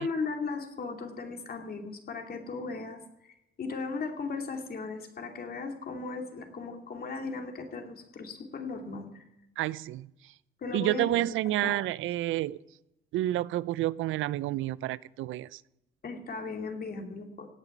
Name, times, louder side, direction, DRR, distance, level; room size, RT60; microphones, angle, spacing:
voice 1, 0.0-3.3 3.6-9.1 10.6-11.2 11.6-11.8 16.0-17.5, left 4 dB, 50° left, 4 dB, 2.7 m, -37 dB
voice 2, 9.6-10.1 10.7-12.6 13.1-15.6, right 15 dB, 85° right, 20 dB, 0.5 m, -29 dB
17.0 x 9.0 x 7.2 m, 0.87 s
cardioid pair, 90°, 20 cm